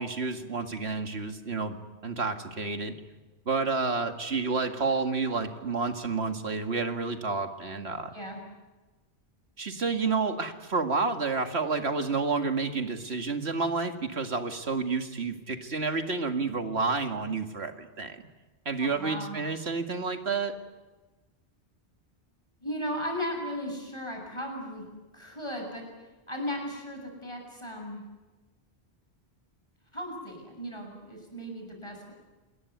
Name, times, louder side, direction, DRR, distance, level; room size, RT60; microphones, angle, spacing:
voice 1, 0.0-1.8 2.0-2.9 3.5-8.1 9.6-18.2 18.7-20.5, right 4 dB, 70° right, 6 dB, 2.4 m, -30 dB
voice 2, 18.8-19.4 22.6-24.8 25.1-25.9 26.3-28.0 29.9-32.1, equal, 25° left, 2 dB, 7.9 m, -36 dB
28.5 x 21.0 x 9.5 m, 1.2 s
omnidirectional pair, 1.1 m